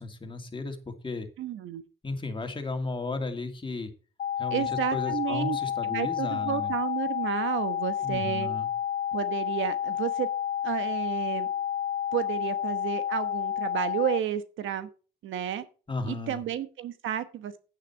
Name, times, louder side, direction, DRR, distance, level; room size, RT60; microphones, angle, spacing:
voice 1, 0.0-1.3 2.0-3.9 4.4-6.7 8.0-8.7 15.9-16.4, left 3 dB, 25° left, 5 dB, 2.3 m, -34 dB
voice 2, 1.4-1.8 4.5-5.6 5.8-8.5 9.1-10.3 10.6-11.5 12.1-14.9 15.2-15.6 16.0-17.5, right 10 dB, 75° right, 11 dB, 1.1 m, -31 dB
sound 1, 4.2-14.2, left 10 dB, 50° left, 0.6 m, -30 dB
9.2 x 9.1 x 4.4 m, 0.36 s
cardioid pair, 90°, 20 cm